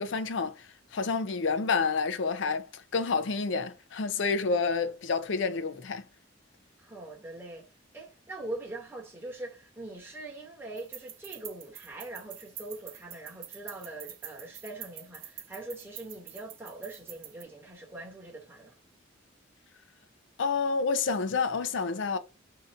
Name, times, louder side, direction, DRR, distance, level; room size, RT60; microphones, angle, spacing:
voice 1, 0.0-6.0 20.4-22.2, left 4 dB, 70° left, 0.5 m, -29 dB
voice 2, 6.8-18.8, right 2 dB, 10° right, 1.0 m, -42 dB
sound 1, 10.8-17.4, right 10 dB, 45° right, 0.6 m, -45 dB
2.8 x 2.5 x 4.0 m
head